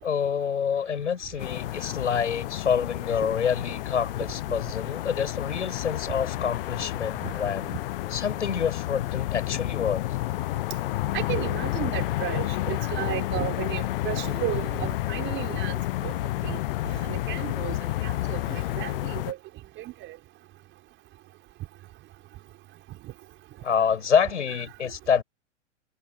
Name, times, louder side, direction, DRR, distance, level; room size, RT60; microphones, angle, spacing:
voice 1, 0.0-7.8 8.1-10.1 23.6-25.2, left 7 dB, 75° left, 7.3 m, -27 dB
sound 1, 1.4-19.3, left 17 dB, 50° left, 0.8 m, -30 dB
voice 2, 11.1-16.1 16.4-16.6 17.0-17.8 18.0-19.4 19.8-20.2, right 15 dB, 30° right, 5.9 m, -33 dB
figure-of-eight pair, 110°, 36 cm